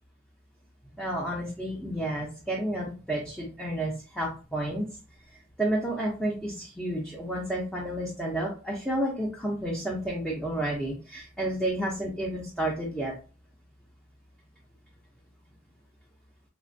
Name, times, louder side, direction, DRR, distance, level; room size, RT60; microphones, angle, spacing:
voice 1, 1.0-4.8 5.6-13.1, right 1 dB, ahead, -5 dB, 0.5 m, -31 dB
3.2 x 2.2 x 2.5 m, 0.35 s
head